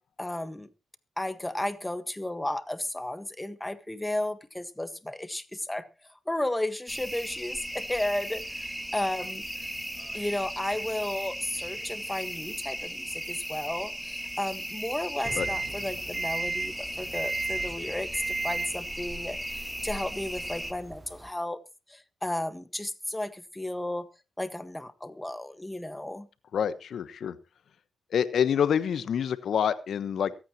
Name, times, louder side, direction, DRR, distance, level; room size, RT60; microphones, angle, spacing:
voice 1, 0.2-0.7 1.2-5.9 6.2-9.5 10.1-21.6 21.9-24.1 24.4-26.3, left 1 dB, 10° left, 11 dB, 1.6 m, -33 dB
sound 1, 6.9-20.7, equal, 5° right, 2.2 m, -37 dB
sound 2, 15.2-21.3, right 3 dB, 25° right, 1.0 m, -35 dB
voice 2, 26.5-27.4 28.1-30.3, left 8 dB, 65° left, 13 dB, 1.2 m, -27 dB
23.0 x 9.0 x 3.1 m, 0.30 s
supercardioid pair, 50°, 0 cm